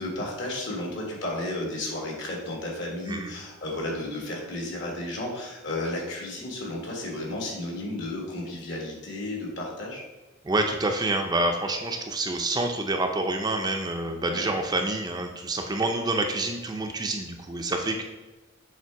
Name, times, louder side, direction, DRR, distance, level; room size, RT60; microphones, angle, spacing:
voice 1, 0.0-10.0 14.3-14.5, left 1 dB, 60° left, -1 dB, 1.7 m, -33 dB
voice 2, 10.4-18.0, right 2 dB, 20° right, 3 dB, 0.5 m, -27 dB
7.5 x 3.3 x 4.5 m, 1.2 s
head